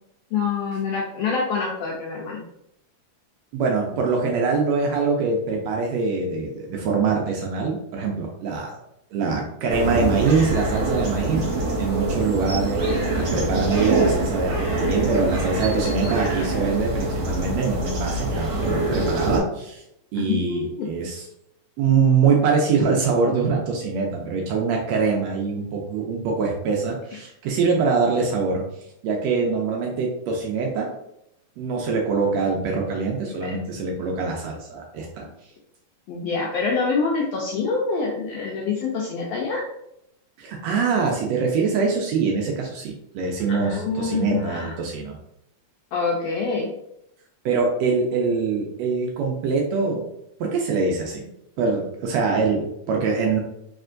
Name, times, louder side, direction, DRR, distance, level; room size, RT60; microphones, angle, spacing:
voice 1, 0.3-2.4 20.2-20.9 33.4-33.5 36.1-39.6 43.5-44.7 45.9-46.7, left 4 dB, 80° left, -1 dB, 1.5 m, -26 dB
voice 2, 3.5-8.8 9.1-12.8 13.1-19.8 20.1-21.3 21.8-28.7 29.0-30.9 31.6-35.3 40.4-45.2 47.5-50.1 50.4-51.3 51.6-53.4, right 4 dB, 75° right, 0 dB, 1.6 m, -24 dB
sound 1, 9.7-19.4, right 2 dB, 55° right, 1.7 m, -24 dB
4.4 x 3.2 x 2.5 m, 0.79 s
omnidirectional pair, 3.4 m